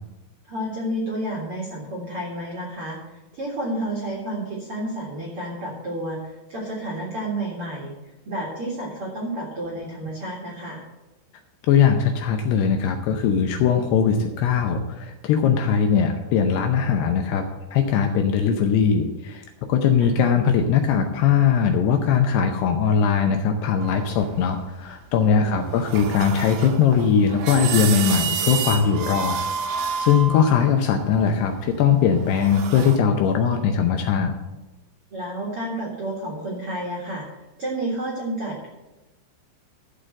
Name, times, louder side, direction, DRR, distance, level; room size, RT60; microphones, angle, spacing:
voice 1, 0.5-3.0 3.3-7.9 8.2-10.8 20.0-20.1 25.4-25.8 35.1-37.2 37.6-38.7, right 1 dB, 50° right, -3 dB, 1.6 m, -30 dB
voice 2, 11.7-17.4 17.7-29.4 30.0-34.3, left 7 dB, 80° left, 4 dB, 2.5 m, -20 dB
sound 1, 23.8-24.8 25.5-33.0, right 7 dB, 75° right, 2.5 m, -30 dB
13.5 x 5.0 x 7.6 m, 1.0 s
omnidirectional pair, 5.4 m